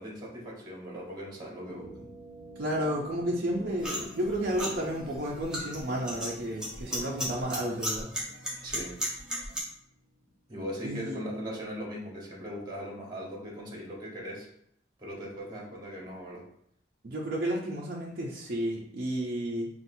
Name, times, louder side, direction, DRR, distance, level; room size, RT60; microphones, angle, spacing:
voice 1, 0.0-2.1 8.6-9.0 10.5-14.5 15.0-16.4, equal, 20° right, -3 dB, 1.2 m, -39 dB
sound 1, 1.7-10.4, right 1 dB, 90° left, 0.9 m, -50 dB
voice 2, 2.6-8.1 10.8-11.2 17.0-19.7, equal, 50° right, -4 dB, 0.6 m, -32 dB
sound 2, 3.8-9.6, equal, 5° right, 0.9 m, -35 dB
5.7 x 2.5 x 2.6 m, 0.70 s
head